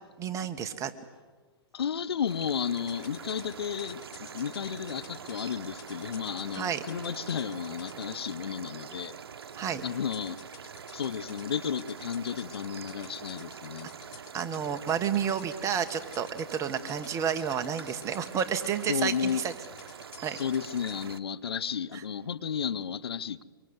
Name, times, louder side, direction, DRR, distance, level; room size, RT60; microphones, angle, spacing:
voice 1, 0.2-0.9 6.5-6.8 9.5-9.8 14.3-19.5 20.2-20.4, right 8 dB, 25° right, 1.6 m, -30 dB
voice 2, 1.7-9.2 9.8-10.4 10.9-13.9 18.9-19.4 20.4-23.4, left 7 dB, 80° left, 1.0 m, -33 dB
sound 1, 2.3-21.2, right 7 dB, 80° right, 0.9 m, -45 dB
sound 2, 2.8-8.0 10.1-21.0, left 10 dB, 50° left, 5.4 m, -49 dB
24.5 x 24.5 x 8.1 m
hypercardioid pair, 125°, 13 cm